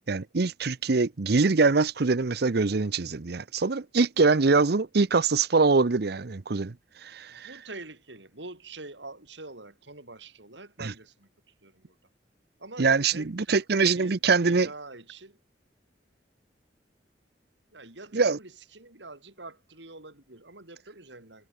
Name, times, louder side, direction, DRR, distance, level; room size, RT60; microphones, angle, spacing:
voice 1, 0.0-6.8 7.0-7.5 10.8-10.9 12.8-14.7 18.1-18.4, right 4 dB, 60° right, 0.7 m, -23 dB
voice 2, 7.3-12.0 12.6-15.4 17.7-21.5, right 2 dB, 80° right, 5.9 m, -46 dB
head